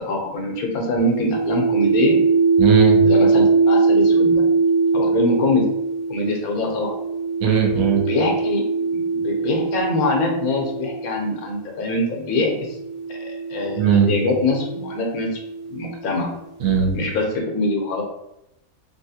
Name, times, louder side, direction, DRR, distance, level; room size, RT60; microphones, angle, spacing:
voice 1, 0.1-2.2 3.0-4.4 4.9-5.6 6.1-6.9 8.0-8.6 8.9-12.8 13.1-15.4 15.7-16.3 16.9-18.0, left 2 dB, 90° left, 1 dB, 1.2 m, -24 dB
sound 1, 1.0-11.3 12.2-16.0, right 4 dB, 65° right, 0.5 m, -21 dB
voice 2, 2.6-3.0 7.4-8.0 13.8-14.1 16.6-17.0, right 7 dB, 85° right, 1 dB, 1.1 m, -18 dB
3.4 x 2.4 x 2.7 m, 0.84 s
omnidirectional pair, 1.5 m